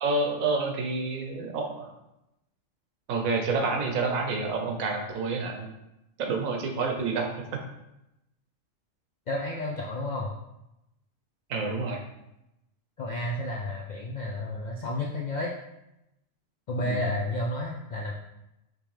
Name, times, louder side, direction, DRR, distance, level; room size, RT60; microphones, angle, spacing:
voice 1, 0.0-1.9 3.1-5.7 6.2-7.3 11.5-12.0 16.8-17.1, right 3 dB, 85° right, 3 dB, 1.2 m, -28 dB
voice 2, 9.3-10.3 13.0-15.5 16.7-18.1, left 1 dB, 85° left, -2 dB, 0.4 m, -31 dB
5.2 x 3.1 x 3.2 m, 0.88 s
omnidirectional pair, 1.4 m